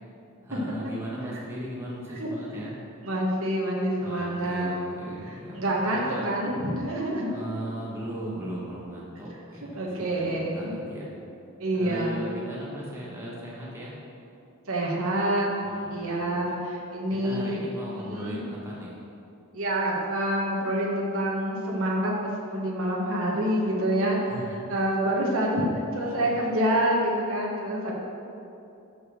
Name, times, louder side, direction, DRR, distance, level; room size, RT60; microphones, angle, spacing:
voice 1, 0.4-2.7 4.0-6.4 7.3-11.1 11.7-14.0 15.6-16.5 17.2-19.0 24.2-24.6 25.9-26.4, right 1 dB, 10° right, -6 dB, 1.2 m, -38 dB
voice 2, 3.0-4.9 5.3-7.3 9.8-10.5 11.6-12.2 14.7-15.5 15.9-17.6 18.1-18.4 19.5-24.2 24.7-27.9, right 1 dB, 65° right, -3 dB, 1.3 m, -27 dB
6.6 x 6.0 x 6.2 m, 2.7 s
head